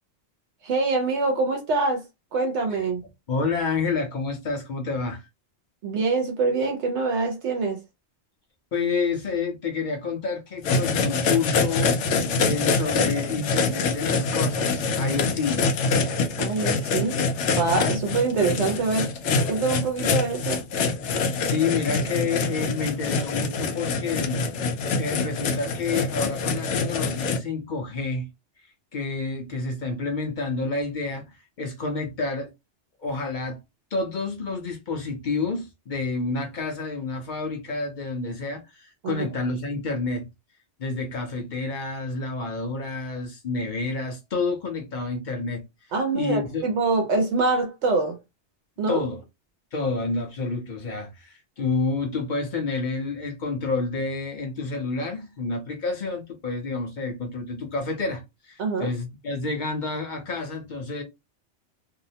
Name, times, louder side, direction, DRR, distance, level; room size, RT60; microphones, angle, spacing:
voice 1, 0.6-2.0 2.3-3.0 5.8-7.8 16.4-17.2 17.6-19.1 19.5-20.6 39.0-39.3 45.9-48.2 48.8-49.0 58.6-58.9, right 3 dB, 75° right, 0.9 m, -24 dB
voice 2, 3.3-5.2 8.7-12.0 12.4-15.7 21.4-28.3 28.9-32.5 33.0-33.6 33.9-40.3 40.8-45.6 46.1-46.6 48.9-49.2 49.7-61.0, left 4 dB, 50° left, 0.7 m, -29 dB
sound 1, 10.6-27.4, left 4 dB, 80° left, 0.9 m, -25 dB
2.7 x 2.1 x 2.7 m
omnidirectional pair, 1.2 m